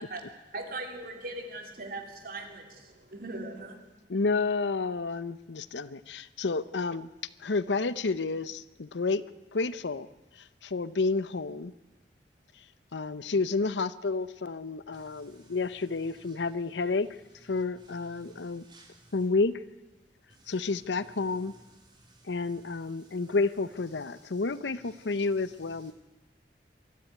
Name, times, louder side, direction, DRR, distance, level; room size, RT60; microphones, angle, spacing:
voice 1, 0.5-3.8, right 2 dB, 55° right, 3.0 m, -39 dB
voice 2, 4.1-7.1 7.4-9.2 9.5-10.1 10.4-11.7 12.9-17.1 17.5-18.6 19.1-19.5 20.5-21.5 22.3-25.9, left 3 dB, 90° left, 0.7 m, -30 dB
voice 3, 14.9-19.3 20.3-23.4 23.9-25.9, right 2 dB, 25° right, 4.8 m, -59 dB
23.0 x 13.0 x 9.3 m
head